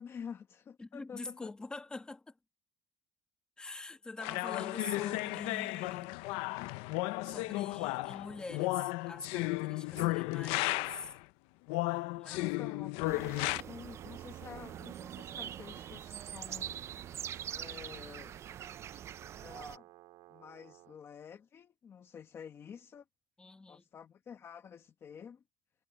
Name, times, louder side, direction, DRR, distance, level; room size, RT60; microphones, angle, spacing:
voice 1, 0.0-1.5 12.0-16.9 17.5-18.4 19.4-19.9 20.3-23.0 23.7-25.4, left 7 dB, 25° left, 1.2 m, -49 dB
voice 2, 0.8-2.4 3.6-6.3 7.2-11.1 12.2-12.4 23.4-23.8, left 3 dB, 10° left, 1.4 m, -45 dB
sound 1, 4.2-11.2 11.7-13.6, left 21 dB, 80° left, 0.6 m, -34 dB
sound 2, 13.0-19.8, right 10 dB, 30° right, 0.4 m, -44 dB
Brass instrument, 13.9-21.0, right 19 dB, 70° right, 2.9 m, -58 dB
cardioid pair, 170°, 9 cm